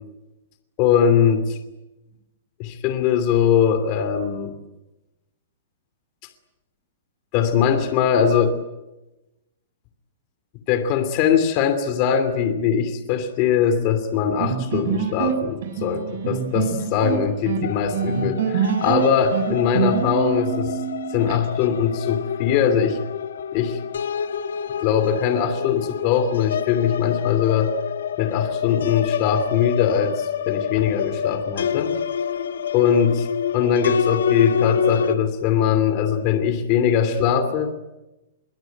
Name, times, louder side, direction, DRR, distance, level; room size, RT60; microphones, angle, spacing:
voice 1, 0.8-1.6 2.6-4.5 7.3-8.6 10.7-20.8 21.1-23.0 23.5-23.8 24.8-27.8 28.2-32.0 32.7-33.2 33.5-37.8, left 8 dB, 30° left, 9 dB, 2.7 m, -21 dB
sound 1, 14.4-21.4, right 7 dB, 50° right, 6.7 m, -25 dB
sound 2, 17.6-35.2, left 7 dB, 80° left, 1.5 m, -27 dB
25.0 x 23.0 x 9.1 m, 0.98 s
hypercardioid pair, 175°, 0 cm